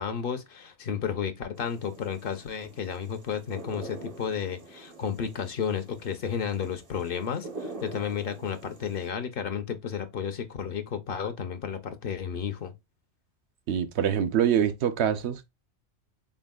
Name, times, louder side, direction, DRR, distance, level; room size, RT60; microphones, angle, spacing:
voice 1, 0.0-12.7, left 7 dB, 60° left, 0.7 m, -32 dB
sound 1, 1.6-9.1, right 3 dB, 40° right, 0.6 m, -45 dB
voice 2, 13.7-15.5, right 9 dB, 70° right, 0.8 m, -25 dB
4.0 x 3.5 x 2.2 m
omnidirectional pair, 1.2 m